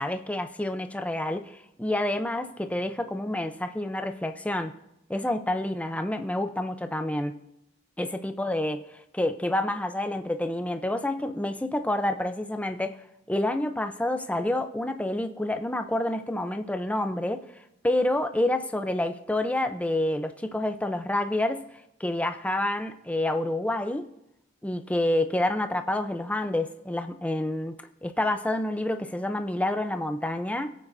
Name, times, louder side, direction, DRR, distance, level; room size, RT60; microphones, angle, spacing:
voice 1, 0.0-4.7 5.1-7.4 8.0-8.8 9.1-13.0 13.3-17.4 17.8-21.6 22.0-24.1 24.6-27.8 28.0-30.7, left 1 dB, 5° left, 7 dB, 0.6 m, -28 dB
21.5 x 8.5 x 2.6 m, 0.84 s
head